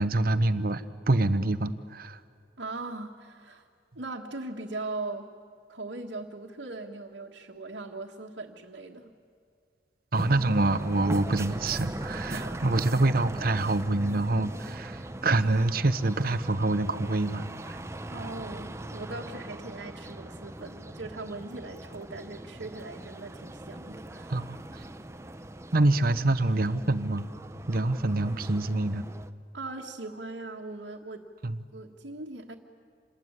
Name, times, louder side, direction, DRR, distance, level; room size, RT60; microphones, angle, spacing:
voice 1, 0.0-2.2 10.1-17.8 24.3-24.8 25.7-27.3 27.7-29.0 31.4-31.6, right 2 dB, 55° right, 12 dB, 0.9 m, -26 dB
voice 2, 2.6-3.6 3.9-5.3 5.7-9.1 12.3-12.8 18.1-24.4 29.5-31.3 31.7-32.5, right 2 dB, 85° right, -2 dB, 1.6 m, -39 dB
sound 1, 10.1-29.3, right 1 dB, 15° right, 0.7 m, -40 dB
27.5 x 20.0 x 9.6 m, 2.2 s
head